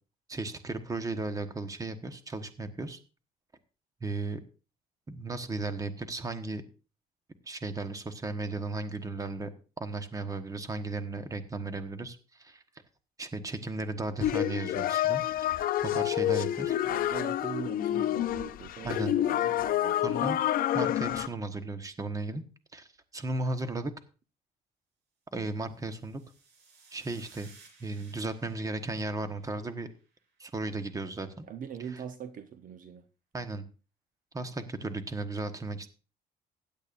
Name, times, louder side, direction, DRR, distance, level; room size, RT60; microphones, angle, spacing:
voice 1, 0.3-3.0 4.0-4.4 5.1-6.6 7.5-9.5 9.8-12.6 13.2-15.2 15.8-16.8 18.8-19.1 20.0-20.4 20.7-22.4 22.7-22.9 23.1-23.9 25.3-26.2 26.9-27.5 27.8-29.9 30.4-31.5 31.9-32.0 33.3-33.6 34.3-35.9, right 2 dB, 20° right, 9 dB, 1.2 m, -35 dB
sound 1, 14.2-21.3, left 12 dB, 60° left, 0.6 m, -28 dB
voice 2, 16.8-20.0 31.5-33.0, right 8 dB, 55° right, 9 dB, 0.9 m, -42 dB
sound 2, 25.7-30.2, right 4 dB, 80° right, 4.0 m, -59 dB
16.0 x 10.5 x 2.6 m, 0.34 s
cardioid pair, 110°, 17 cm